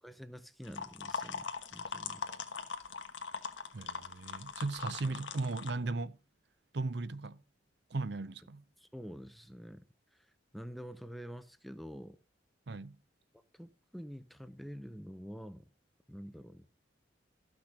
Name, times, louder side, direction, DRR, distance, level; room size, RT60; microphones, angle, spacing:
voice 1, 0.0-2.3 5.0-5.2 8.8-9.8 10.1-12.2 13.5-15.7 16.1-16.7, equal, ahead, 0.5 m, -47 dB
sound 1, 0.6-5.7, left 5 dB, 70° left, 1.1 m, -41 dB
voice 2, 3.7-6.2 6.7-7.4 7.9-8.6 12.7-13.0, right 3 dB, 60° right, 0.6 m, -37 dB
13.5 x 6.2 x 4.9 m
head